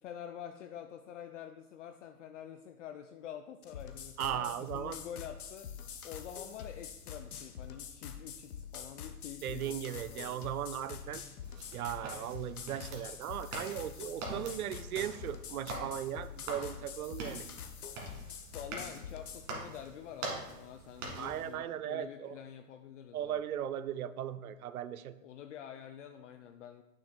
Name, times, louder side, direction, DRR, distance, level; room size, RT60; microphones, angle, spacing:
voice 1, 0.0-5.7 6.0-10.4 18.5-23.4 25.2-26.8, left 9 dB, 55° left, 7 dB, 0.5 m, -47 dB
sound 1, 3.6-19.5, left 7 dB, 70° left, 0.8 m, -46 dB
voice 2, 4.2-5.0 9.4-11.2 11.7-17.4 21.2-22.4 23.1-25.1, right 10 dB, 70° right, 14 dB, 0.5 m, -37 dB
sound 2, 11.4-21.5, right 2 dB, 55° right, 2.0 m, -45 dB
8.7 x 6.3 x 2.2 m, 0.98 s
figure-of-eight pair, 105°, 46 cm